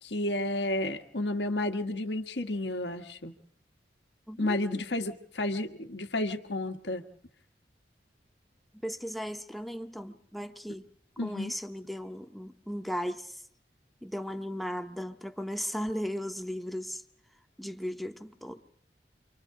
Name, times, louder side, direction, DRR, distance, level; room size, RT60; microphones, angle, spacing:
voice 1, 0.0-3.3 4.4-7.0 11.2-11.5, left 1 dB, 75° left, 6 dB, 1.4 m, -31 dB
voice 2, 4.3-4.8 8.8-10.9 11.2-13.4 14.0-17.0 17.6-18.6, equal, ahead, 6 dB, 0.8 m, -36 dB
29.5 x 25.0 x 3.7 m, 0.67 s
head